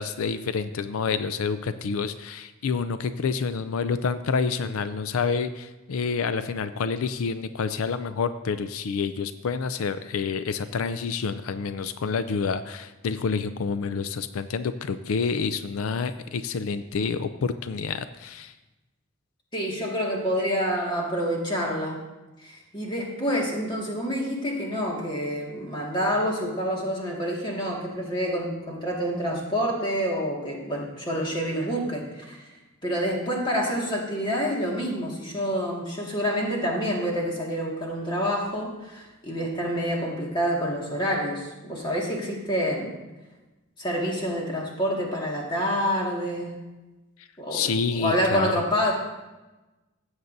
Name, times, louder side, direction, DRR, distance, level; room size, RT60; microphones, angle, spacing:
voice 1, 0.0-18.5 47.2-48.5, left 5 dB, 90° left, 12 dB, 0.4 m, -28 dB
voice 2, 19.5-22.0 22.4-32.5 32.8-43.0 43.8-46.5 47.4-48.9, equal, 25° left, -2 dB, 1.9 m, -27 dB
16.0 x 8.0 x 2.7 m, 1.1 s
head